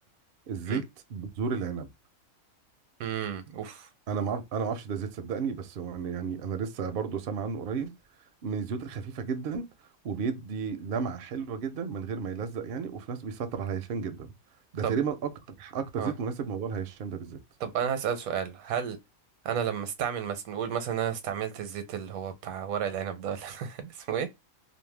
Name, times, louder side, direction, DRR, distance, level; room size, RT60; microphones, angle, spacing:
voice 1, 0.5-0.8 1.1-1.9 4.1-7.9 8.4-9.6 10.0-14.3 14.7-15.3 15.6-17.4, right 6 dB, 60° right, 0.6 m, -32 dB
voice 2, 3.0-3.9 14.8-15.0 16.0-16.1 17.6-19.0 19.4-24.3, right 8 dB, 80° right, 1.0 m, -32 dB
2.6 x 2.1 x 3.2 m
omnidirectional pair, 1.5 m